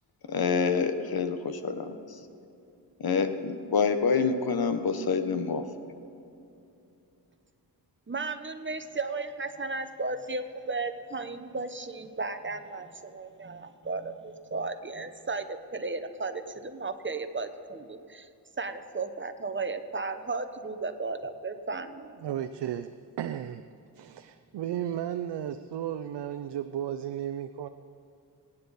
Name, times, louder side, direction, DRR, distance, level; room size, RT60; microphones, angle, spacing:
voice 1, 0.3-2.2 3.0-5.6, left 5 dB, 60° left, 9 dB, 1.2 m, -27 dB
voice 2, 8.1-18.3 18.6-22.2, right 3 dB, 30° right, 9 dB, 1.1 m, -35 dB
voice 3, 22.2-23.7 23.9-27.7, right 10 dB, 85° right, 8 dB, 0.6 m, -34 dB
23.5 x 9.9 x 4.2 m, 2.8 s
cardioid pair, 75°, 41 cm